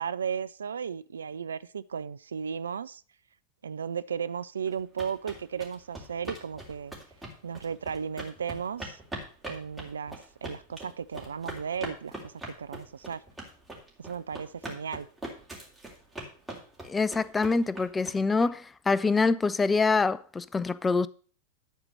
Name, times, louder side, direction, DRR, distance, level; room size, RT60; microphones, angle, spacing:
voice 1, 0.0-3.0 3.6-6.9 7.4-9.0 9.5-13.2 14.0-15.1, right 7 dB, 70° right, 0.3 m, -35 dB
sound 1, 4.7-18.4, right 1 dB, 5° right, 3.1 m, -42 dB
voice 2, 16.9-21.1, left 4 dB, 15° left, 0.4 m, -25 dB
11.5 x 4.4 x 6.3 m
figure-of-eight pair, 90°, 0 cm